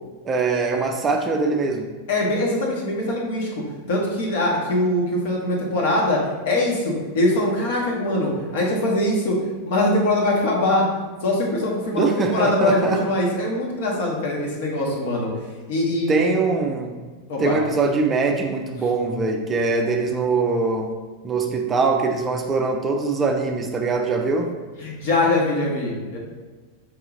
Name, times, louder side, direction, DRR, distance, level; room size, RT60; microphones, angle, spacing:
voice 1, 0.2-1.9 11.9-13.0 16.1-17.0 17.4-20.9 21.2-24.5, right 4 dB, 20° right, 3 dB, 0.4 m, -22 dB
voice 2, 2.1-6.2 6.4-9.4 9.7-10.9 11.2-15.3 15.7-16.3 17.3-17.6 24.8-26.2, left 1 dB, 55° left, -2 dB, 1.2 m, -22 dB
4.7 x 2.8 x 3.7 m, 1.3 s
figure-of-eight pair, 90°, 0 cm